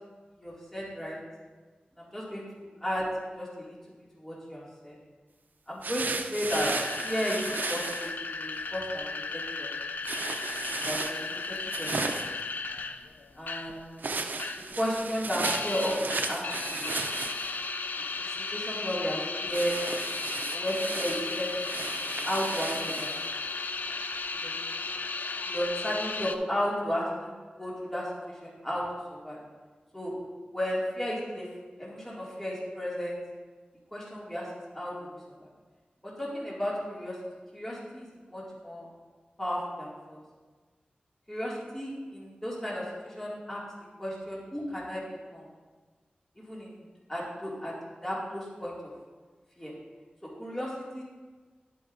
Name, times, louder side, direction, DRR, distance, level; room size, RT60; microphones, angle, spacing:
voice 1, 0.4-1.2 2.0-3.1 3.4-3.8 4.2-5.0 5.7-6.7 7.0-9.0 9.3-9.7 10.8-11.2 11.5-12.3 13.3-14.1 14.8-16.8 18.2-19.7 20.5-23.1 24.4-24.6 25.4-27.3 27.6-28.8 29.1-29.4 29.9-30.1 30.5-31.5 31.8-33.2 33.9-34.5 34.7-35.1 35.4-35.5 36.0-37.2 37.5-38.9 39.4-40.2 41.3-43.6 44.0-45.0 45.3-45.4 46.4-46.8 47.1-47.7 48.0-48.7 49.6-49.7 50.4-51.0, equal, 10° left, -6 dB, 2.3 m, -34 dB
sound 1, 5.8-8.1 10.0-12.4 14.0-17.7 19.5-23.3, right 3 dB, 75° right, 0.5 m, -35 dB
sound 2, 6.5-13.8 14.1-14.8 15.0-26.4, left 4 dB, 70° left, 0.4 m, -35 dB
11.0 x 8.3 x 2.6 m, 1.4 s
wide cardioid pair, 80°, 3 cm